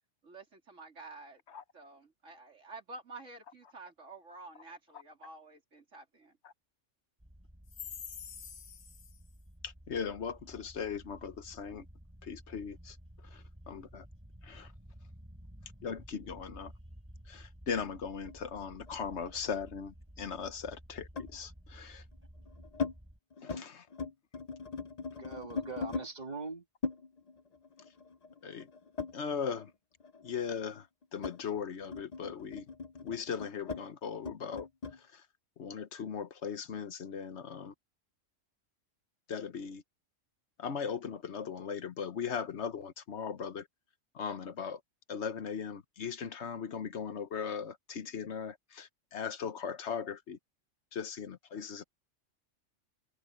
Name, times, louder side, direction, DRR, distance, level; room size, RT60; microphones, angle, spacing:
voice 1, 0.2-1.4 1.7-6.4, right 3 dB, 80° right, 3.5 m, -50 dB
sound 1, 7.2-23.2, equal, 10° right, 4.3 m, -54 dB
voice 2, 8.2-8.6 9.6-11.8 12.2-13.0 13.2-14.1 14.4-14.7 15.8-16.7 17.3-22.0 23.4-23.9 28.4-28.7 29.1-29.7 30.2-30.9 31.1-32.6 33.0-34.7 34.9-35.2 35.6-37.7 39.3-39.8 40.6-43.7 44.1-44.8 45.1-50.4 50.9-51.8, left 6 dB, 65° left, 1.3 m, -39 dB
sound 2, 18.3-19.9 21.2-21.4 22.1-22.9 23.3-23.6 23.9-26.1 26.8-29.7 30.0-35.0, left 5 dB, 40° left, 0.7 m, -40 dB
voice 3, 25.2-26.7, right 4 dB, 35° right, 1.9 m, -41 dB
omnidirectional pair, 1.3 m